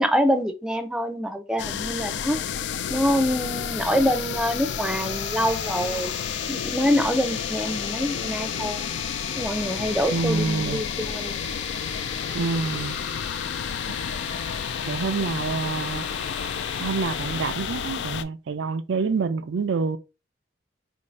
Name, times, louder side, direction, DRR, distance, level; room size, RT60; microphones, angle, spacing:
voice 1, 0.0-2.4 2.9-6.1 6.5-8.9 9.4-11.3, equal, 5° right, 0.4 m, -25 dB
sound 1, 1.6-18.2, left 8 dB, 70° left, 0.3 m, -31 dB
Train, 4.5-18.0, left 3 dB, 30° left, 0.9 m, -40 dB
voice 2, 10.1-10.8 12.3-13.0 14.9-16.1 16.8-20.0, right 4 dB, 90° right, 0.4 m, -27 dB
4.5 x 2.6 x 3.1 m
head